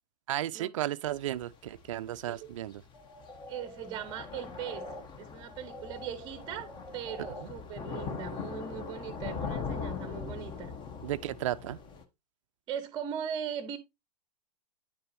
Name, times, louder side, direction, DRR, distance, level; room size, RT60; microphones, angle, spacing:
voice 1, 0.3-2.8 11.0-11.8, right 13 dB, 50° right, 0.5 m, -34 dB
Thunder / Rain, 1.1-12.0, left 5 dB, 20° left, 1.1 m, -41 dB
sound 1, 2.9-5.0 5.4-7.4, left 1 dB, 80° left, 3.3 m, -46 dB
voice 2, 3.5-4.9 5.2-10.7 12.7-13.8, right 8 dB, 20° right, 0.9 m, -39 dB
9.7 x 6.6 x 2.7 m
figure-of-eight pair, 105°, 21 cm